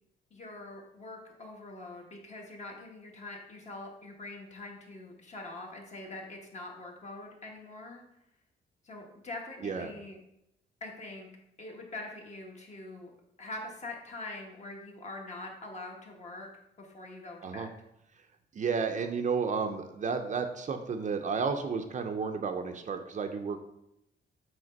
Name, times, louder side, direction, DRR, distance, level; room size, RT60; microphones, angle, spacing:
voice 1, 0.3-8.0 8.8-10.2 10.8-11.3 11.6-13.1 13.4-16.5 16.8-17.7, left 2 dB, 35° left, 1 dB, 1.3 m, -44 dB
voice 2, 18.5-23.6, right 5 dB, 40° right, 6 dB, 0.5 m, -32 dB
7.8 x 3.2 x 5.2 m, 0.82 s
wide cardioid pair, 170°, 19 cm